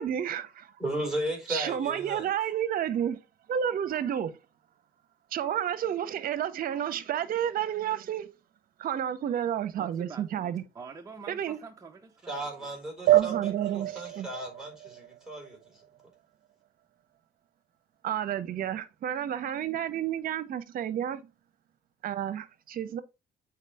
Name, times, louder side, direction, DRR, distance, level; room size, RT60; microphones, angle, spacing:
voice 1, 0.0-0.7 1.5-3.2 3.5-4.3 5.3-8.3 8.8-10.6 11.3-11.6 13.1-14.3 18.0-21.3 22.0-23.0, right 10 dB, 60° right, 1.0 m, -31 dB
voice 2, 0.8-2.3 12.3-15.8, right 1 dB, 5° right, 4.8 m, -35 dB
voice 3, 9.8-12.8, right 5 dB, 20° right, 1.0 m, -47 dB
sound 1, 13.1-16.0, right 14 dB, 85° right, 0.6 m, -27 dB
8.2 x 5.0 x 3.5 m
cardioid pair, 110°, 17 cm